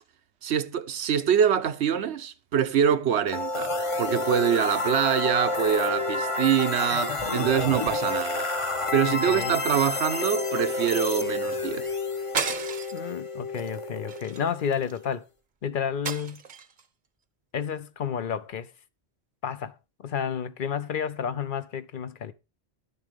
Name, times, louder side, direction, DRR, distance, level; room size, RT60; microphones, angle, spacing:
voice 1, 0.4-8.5 8.9-11.9, right 9 dB, 85° right, 1.1 m, -25 dB
sound 1, 3.3-15.1, left 3 dB, 30° left, 1.0 m, -29 dB
voice 2, 9.1-9.6 12.9-15.3 15.6-16.4 17.5-18.7 19.4-19.7 20.0-22.3, left 7 dB, 55° left, 0.8 m, -31 dB
sound 2, 12.3-13.1 13.5-13.7 14.1-15.0 16.0-16.8, right 6 dB, 50° right, 0.9 m, -33 dB
11.5 x 6.6 x 5.1 m
omnidirectional pair, 1.1 m